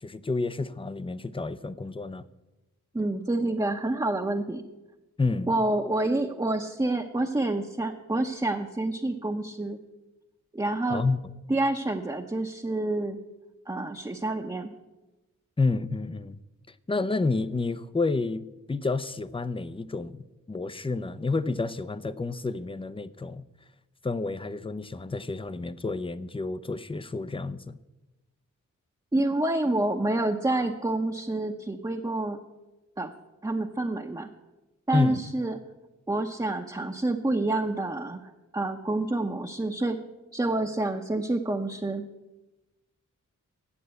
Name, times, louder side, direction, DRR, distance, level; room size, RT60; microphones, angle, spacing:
voice 1, 0.0-2.2 5.2-5.5 10.9-11.2 15.6-16.4 16.9-23.5 24.0-27.8 34.9-35.2, left 3 dB, 15° left, 15 dB, 0.6 m, -29 dB
voice 2, 2.9-4.6 5.5-9.8 10.5-11.0 11.5-13.2 13.7-14.7 29.1-32.4 33.0-33.1 33.4-34.3 34.9-35.6 36.1-40.0 40.3-42.1, right 2 dB, 15° right, 1 dB, 0.8 m, -28 dB
9.7 x 7.6 x 8.1 m, 1.0 s
cardioid pair, 60°, 31 cm